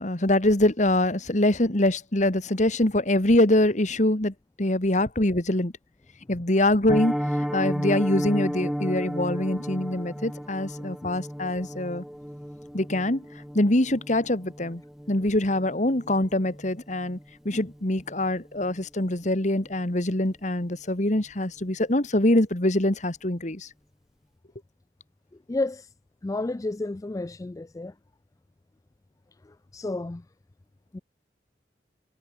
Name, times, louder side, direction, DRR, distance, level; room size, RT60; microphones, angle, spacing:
voice 1, 0.0-5.7 6.3-7.2 7.5-12.0 12.7-13.2 13.5-14.8 15.1-17.2 17.5-23.7, left 1 dB, 45° left, 2.0 m, -24 dB
Piano, 6.9-17.8 18.0-18.3 18.6-18.7 19.1-19.3 19.6-19.7, equal, 5° right, 1.5 m, -33 dB
voice 2, 25.5-25.9 26.2-27.9 29.7-30.2 30.9-31.0, left 2 dB, 20° left, 0.4 m, -31 dB
head